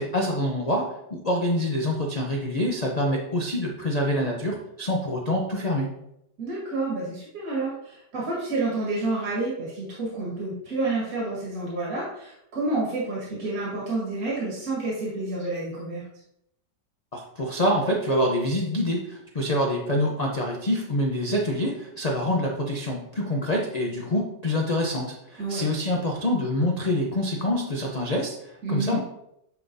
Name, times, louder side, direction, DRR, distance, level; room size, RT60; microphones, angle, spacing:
voice 1, 0.0-5.9 17.1-29.0, left 1 dB, 65° left, 0 dB, 0.4 m, -26 dB
voice 2, 6.4-16.0 25.4-25.6 28.6-29.0, right 2 dB, 55° right, -6 dB, 2.1 m, -29 dB
9.5 x 3.8 x 2.7 m, 0.79 s
omnidirectional pair, 1.8 m